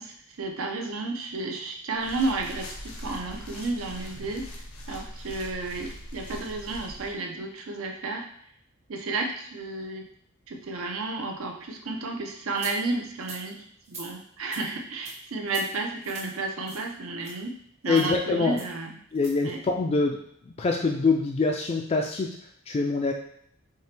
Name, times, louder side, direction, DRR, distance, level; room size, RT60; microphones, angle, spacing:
voice 1, 0.0-8.3 8.9-10.1 10.5-17.6 17.8-18.9 19.4-19.6, right 3 dB, 70° right, 2 dB, 0.6 m, -32 dB
sound 1, 1.9-7.1, left 1 dB, 85° left, 0.9 m, -41 dB
sound 2, 12.6-12.7 13.2-13.4 13.8-14.1 14.5-14.7 15.0-15.2 15.5-15.7 16.0-16.3 16.7-16.9 17.2-17.3 17.9-18.1 18.6-18.7 19.1-19.3, right 3 dB, 30° right, 0.8 m, -41 dB
voice 2, 17.9-18.6 19.1-22.3 22.7-23.1, left 4 dB, 30° left, 1 dB, 0.3 m, -25 dB
4.6 x 2.9 x 3.3 m, 0.70 s
head